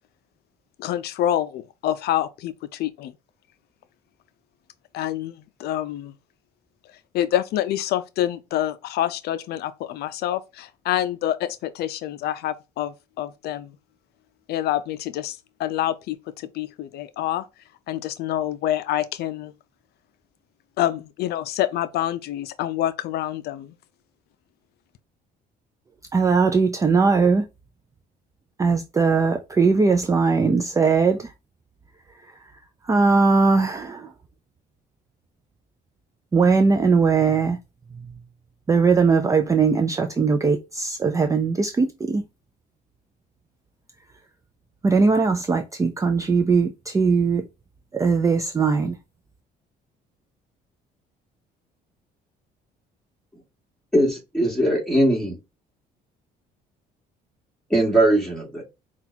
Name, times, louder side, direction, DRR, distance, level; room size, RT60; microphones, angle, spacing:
voice 1, 0.8-3.1 4.9-6.1 7.1-13.7 14.5-17.4 17.9-19.5 20.8-23.7, left 12 dB, 70° left, 0.4 m, -27 dB
voice 2, 26.1-27.5 28.6-31.3 32.2-32.3 32.8-34.1 36.3-37.6 38.7-42.2 44.8-47.5 47.9-49.0, right 4 dB, 20° right, 0.4 m, -20 dB
voice 3, 53.9-55.4 57.7-58.6, right 1 dB, 5° left, 2.1 m, -20 dB
5.7 x 2.4 x 2.7 m
cardioid pair, 110°, 17 cm